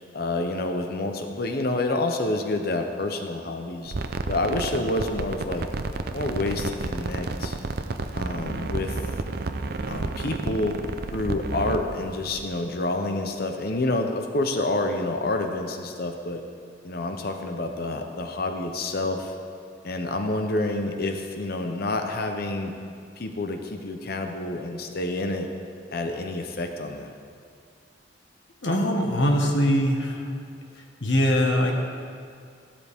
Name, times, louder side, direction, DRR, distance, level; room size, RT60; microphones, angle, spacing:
voice 1, 0.1-3.9 4.3-5.7 6.1-7.6 8.1-9.0 9.9-10.8 11.1-16.4 16.8-19.3 19.8-22.8 23.2-25.5 25.9-27.1, left 2 dB, 55° left, 5 dB, 0.8 m, -28 dB
sound 1, 3.9-12.5, right 3 dB, 55° right, 0.6 m, -31 dB
voice 2, 28.6-30.3 31.0-31.7, equal, 75° left, 1 dB, 1.6 m, -22 dB
14.5 x 12.5 x 3.6 m, 2.3 s
head